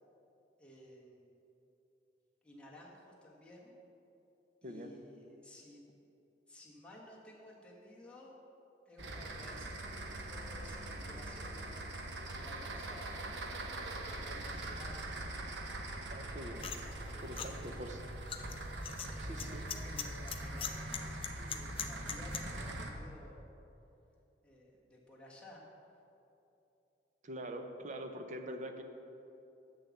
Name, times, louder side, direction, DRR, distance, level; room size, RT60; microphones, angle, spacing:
voice 1, 0.6-1.4 2.4-3.7 4.6-5.8 6.5-8.3 8.8-13.3 14.0-15.0 17.1-17.8 19.2-23.5 24.4-25.6, left 1 dB, 5° left, -5 dB, 1.3 m, -55 dB
sound 1, 9.0-22.9, right 1 dB, 75° right, 0.9 m, -42 dB
voice 2, 16.1-16.7 17.1-18.0 19.2-19.7 27.2-28.8, right 1 dB, 45° right, 6 dB, 0.7 m, -44 dB
sound 2, 16.6-22.4, left 8 dB, 30° left, 0.5 m, -43 dB
7.0 x 6.8 x 7.1 m, 2.8 s
head